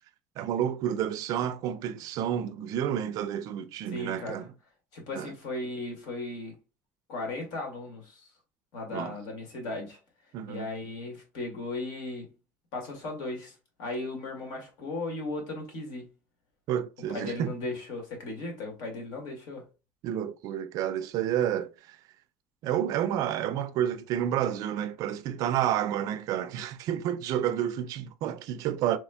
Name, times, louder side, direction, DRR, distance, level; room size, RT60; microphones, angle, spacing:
voice 1, 0.4-4.5 5.1-5.3 8.9-9.1 10.3-10.7 16.7-17.5 20.0-22.0 22.6-29.0, right 10 dB, 55° right, 0.4 m, -30 dB
voice 2, 3.9-4.4 4.9-6.6 7.1-8.3 8.7-10.0 10.5-12.3 12.7-16.1 17.1-19.6, left 2 dB, 65° left, 1.9 m, -36 dB
4.3 x 3.1 x 2.2 m
cardioid pair, 150°, 7 cm